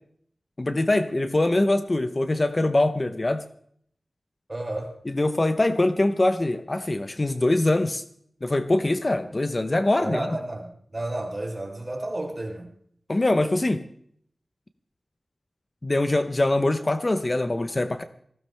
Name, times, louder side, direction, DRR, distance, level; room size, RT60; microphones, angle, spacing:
voice 1, 0.6-3.4 5.1-8.0 8.4-10.4 13.1-13.8 15.8-18.0, left 2 dB, 35° left, 9 dB, 0.8 m, -23 dB
voice 2, 4.5-5.0 10.0-12.7, right 1 dB, 30° right, 1 dB, 3.7 m, -32 dB
19.0 x 16.0 x 3.4 m, 0.64 s
wide cardioid pair, 85°, 0 cm